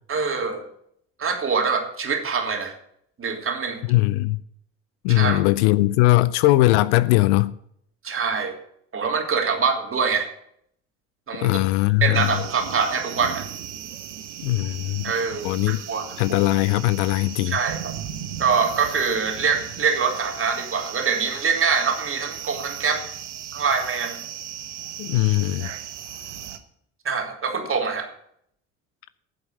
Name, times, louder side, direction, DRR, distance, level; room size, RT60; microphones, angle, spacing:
voice 1, 0.1-0.6 1.2-2.7 3.2-3.8 5.1-5.4 8.0-8.6 8.9-10.3 11.3-11.5 12.0-13.4 15.0-16.4 17.5-17.9 18.4-23.1 23.5-24.2 27.0-28.1, right 5 dB, 40° right, 3.0 m, -24 dB
voice 2, 3.9-4.4 5.0-7.5 11.4-12.3 14.4-15.0 15.4-15.8 16.2-17.6 25.0-25.7, left 18 dB, 75° left, 0.6 m, -20 dB
sound 1, 12.1-26.6, right 10 dB, 90° right, 0.9 m, -37 dB
9.7 x 7.9 x 9.6 m
hypercardioid pair, 60°, 34 cm